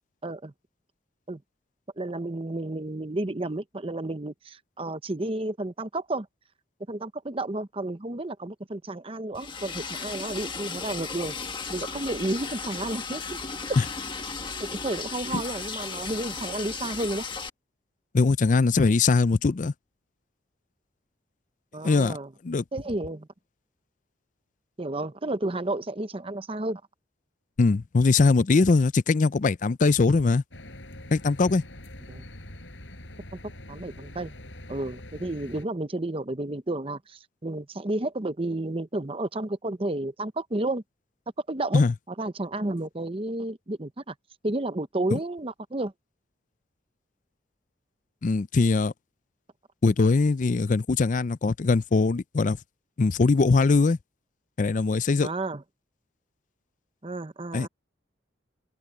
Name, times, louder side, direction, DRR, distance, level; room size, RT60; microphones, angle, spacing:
voice 1, 0.2-0.5 1.3-1.4 2.0-6.3 6.9-11.4 11.7-13.4 13.7-13.8 14.6-17.2 21.7-22.3 22.7-23.3 24.8-26.8 32.1-32.2 33.3-34.3 34.7-40.8 41.5-41.8 42.2-44.1 44.4-45.9 55.2-55.6 57.0-57.7, right 2 dB, 30° right, 0.8 m, -31 dB
Liquid, 9.4-17.5, left 5 dB, 25° left, 1.6 m, -35 dB
voice 2, 18.1-19.7 21.8-22.2 22.4-22.6 27.6-30.4 31.1-31.6 41.7-41.9 45.1-45.2 48.2-48.9 49.8-52.6 53.0-54.0 54.6-55.3 57.5-57.7, left 4 dB, 45° left, 0.4 m, -21 dB
sound 1, 30.5-35.7, left 1 dB, 75° left, 5.9 m, -44 dB
open air
head